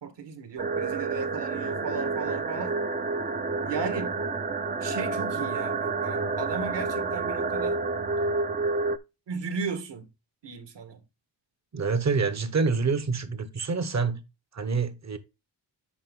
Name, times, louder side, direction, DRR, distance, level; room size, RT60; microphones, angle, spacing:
voice 1, 0.0-2.8 3.6-4.1 4.8-7.8 9.3-10.1 10.4-11.0, right 5 dB, 65° right, 1.9 m, -35 dB
sound 1, 0.6-9.0, right 3 dB, 20° right, 0.5 m, -29 dB
voice 2, 11.7-14.2 14.5-15.2, right 4 dB, 35° right, 1.0 m, -27 dB
8.5 x 5.3 x 3.7 m
wide cardioid pair, 145°, 45 cm